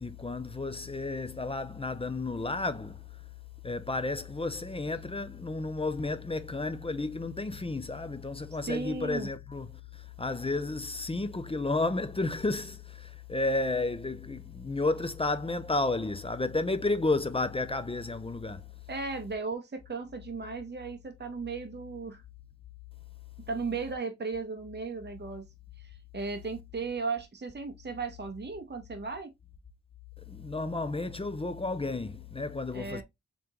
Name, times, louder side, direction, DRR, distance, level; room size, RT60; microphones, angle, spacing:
voice 1, 0.0-3.0 3.6-9.7 9.9-18.7 30.2-33.0, left 2 dB, 20° left, 0.4 m, -32 dB
voice 2, 8.7-9.3 18.9-22.2 23.5-25.4 25.8-29.3 32.7-33.0, right 4 dB, 35° right, 0.9 m, -36 dB
3.6 x 3.5 x 2.9 m
wide cardioid pair, 80°, 31 cm